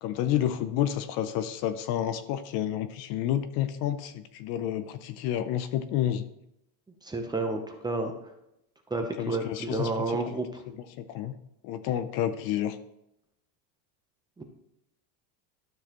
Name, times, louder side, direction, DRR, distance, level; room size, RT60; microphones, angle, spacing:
voice 1, 0.0-6.2 9.2-10.2 10.7-11.3 11.6-12.8, left 11 dB, 50° left, 11 dB, 0.6 m, -30 dB
voice 2, 7.0-8.1 8.9-10.6 14.4-14.5, right 2 dB, 10° right, 4 dB, 0.7 m, -30 dB
12.0 x 6.4 x 3.0 m, 0.82 s
supercardioid pair, 145°, 50 cm